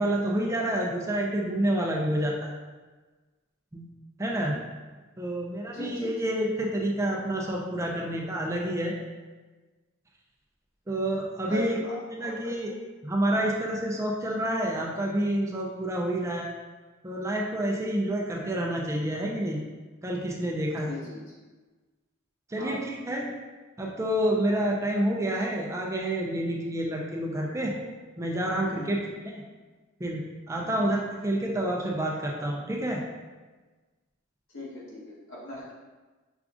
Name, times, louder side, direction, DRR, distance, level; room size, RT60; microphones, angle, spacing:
voice 1, 0.0-2.5 3.7-3.8 4.2-4.6 5.2-8.9 10.9-11.8 12.1-12.7 13.0-16.5 17.0-19.6 20.0-20.9 22.5-23.3 23.8-27.7 28.2-29.4 30.0-30.2 30.5-33.0, right 1 dB, 15° right, -2 dB, 0.4 m, -28 dB
voice 2, 5.7-6.1 11.5-12.5 20.8-21.3 22.5-22.8 28.7-29.0 30.6-30.8 34.5-35.7, equal, 85° left, -7 dB, 1.3 m, -39 dB
5.9 x 2.4 x 2.4 m, 1.3 s
head